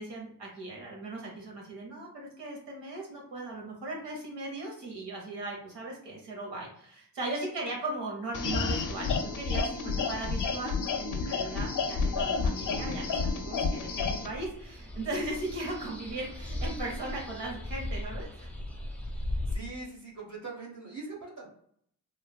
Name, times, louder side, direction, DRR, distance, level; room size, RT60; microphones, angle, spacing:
voice 1, 0.0-18.5, right 2 dB, 80° right, -2 dB, 1.1 m, -38 dB
sound 1, 8.3-14.3, left 4 dB, 50° left, 0.5 m, -30 dB
sound 2, 11.9-19.6, left 1 dB, 5° left, 0.7 m, -38 dB
voice 2, 19.5-21.5, right 3 dB, 45° right, -4 dB, 1.0 m, -42 dB
3.1 x 2.2 x 2.2 m, 0.66 s
supercardioid pair, 40°, 42 cm